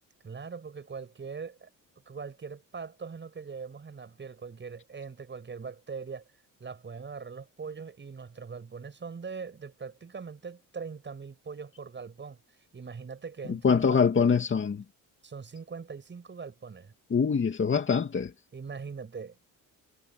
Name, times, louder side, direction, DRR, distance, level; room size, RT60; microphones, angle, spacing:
voice 1, 0.2-1.7 2.1-6.2 6.6-12.4 12.7-14.4 15.2-16.9 18.5-19.4, right 5 dB, 35° right, 7.3 m, -41 dB
voice 2, 13.5-14.8 17.1-18.3, left 6 dB, 35° left, 2.5 m, -24 dB
cardioid pair, 105°, 34 cm